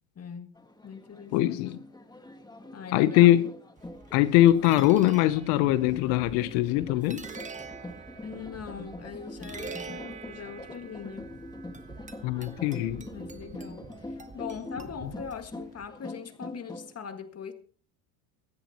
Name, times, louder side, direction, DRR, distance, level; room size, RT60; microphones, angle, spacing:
voice 1, 0.2-0.6 0.8-1.7 2.7-3.4 4.6-4.7 8.2-11.3 13.1-17.5, left 6 dB, 30° left, 1.8 m, -41 dB
sound 1, 0.6-16.9, left 1 dB, 10° left, 1.7 m, -44 dB
voice 2, 1.3-1.8 2.9-3.5 4.1-7.2 12.2-13.0, left 14 dB, 85° left, 0.9 m, -22 dB
sound 2, 3.8-15.9, right 4 dB, 15° right, 1.4 m, -46 dB
24.0 x 10.5 x 2.9 m
cardioid pair, 120°, 49 cm